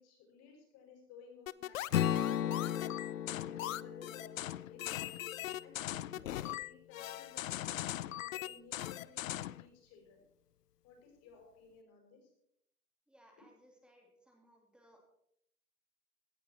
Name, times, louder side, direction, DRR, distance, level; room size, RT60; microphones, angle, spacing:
voice 1, 0.0-2.1 2.4-3.0 3.3-5.2 5.6-10.2 10.8-12.3, left 5 dB, 35° left, 2 dB, 6.0 m, -57 dB
sound 1, 1.5-9.6, left 14 dB, 60° left, 0.6 m, -40 dB
Strum, 1.9-6.1, left 10 dB, 85° left, 0.8 m, -36 dB
voice 2, 13.1-15.0, equal, ahead, 1 dB, 2.9 m, -64 dB
17.0 x 12.0 x 4.4 m, 0.74 s
hypercardioid pair, 135°, 46 cm